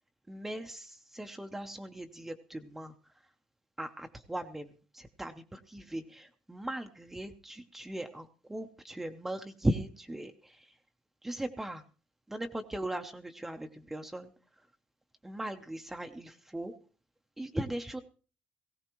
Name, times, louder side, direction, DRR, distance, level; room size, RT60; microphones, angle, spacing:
voice 1, 0.3-3.3 3.8-10.8 11.2-11.8 12.3-14.3 14.6-14.7 15.2-16.8 17.4-18.0, right 1 dB, 5° right, 5 dB, 0.6 m, -38 dB
18.5 x 16.5 x 3.0 m, 0.38 s
cardioid pair, 175°, 4 cm